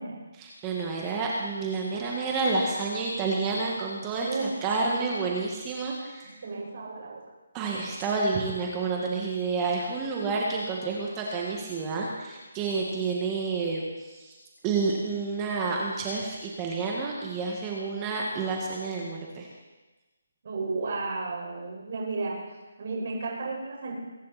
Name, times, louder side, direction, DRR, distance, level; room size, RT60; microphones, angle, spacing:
voice 1, 0.4-4.3 4.6-6.2 7.5-13.9 14.6-19.5, right 4 dB, 15° right, -2 dB, 2.0 m, -29 dB
voice 2, 6.4-7.2 8.3-8.4 20.4-22.5 22.8-23.9, right 3 dB, 50° right, -2 dB, 5.6 m, -33 dB
23.5 x 10.5 x 4.4 m, 1.2 s
hypercardioid pair, 165°, 0 cm